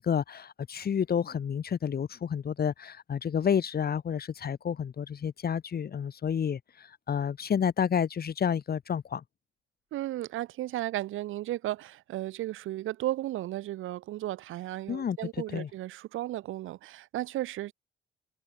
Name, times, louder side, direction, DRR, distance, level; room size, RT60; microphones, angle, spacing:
voice 1, 0.0-9.2 14.9-15.2 15.5-15.7, left 7 dB, 50° left, 3.6 m, -30 dB
voice 2, 9.9-17.7, right 15 dB, 85° right, 7.5 m, -34 dB
cardioid pair, 90°, 20 cm